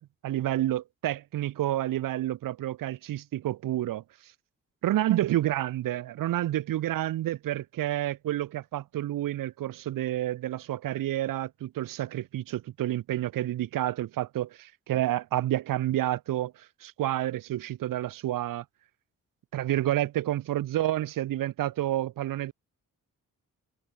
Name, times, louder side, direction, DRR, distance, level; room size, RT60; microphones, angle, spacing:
voice 1, 0.2-4.0 4.8-18.6 19.5-22.5, right 13 dB, 90° right, 1.1 m, -29 dB
cardioid pair, 70°, 32 cm